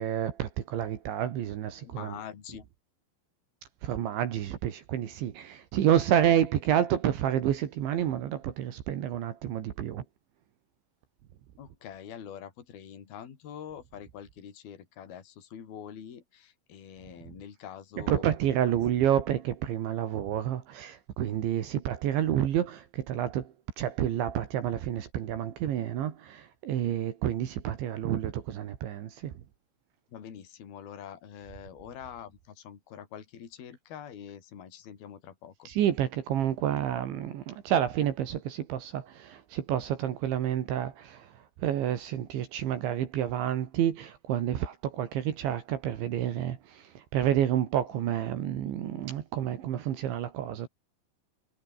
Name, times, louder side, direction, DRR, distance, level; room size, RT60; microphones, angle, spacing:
voice 1, 0.0-2.2 3.8-10.0 18.0-29.3 35.7-50.7, right 10 dB, 70° right, 4.2 m, -29 dB
voice 2, 1.8-2.7 11.6-18.3 18.6-18.8 30.1-35.7 47.9-48.0, left 9 dB, 50° left, 5.1 m, -45 dB
omnidirectional pair, 5.8 m